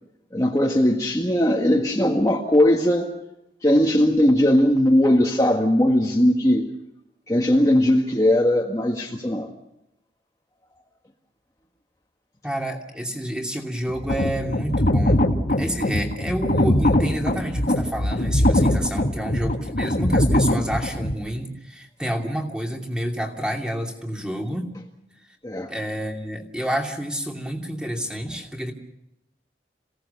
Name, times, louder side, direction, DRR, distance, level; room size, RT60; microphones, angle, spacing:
voice 1, 0.3-3.1 3.6-6.7 7.3-9.5 25.4-25.7, left 1 dB, 20° left, -1 dB, 1.6 m, -19 dB
voice 2, 12.4-15.2 15.5-24.7 25.7-28.7, equal, 5° right, 1 dB, 2.6 m, -29 dB
sound 1, 13.9-21.1, left 1 dB, 55° left, 2.0 m, -21 dB
27.0 x 17.5 x 6.9 m, 0.86 s
head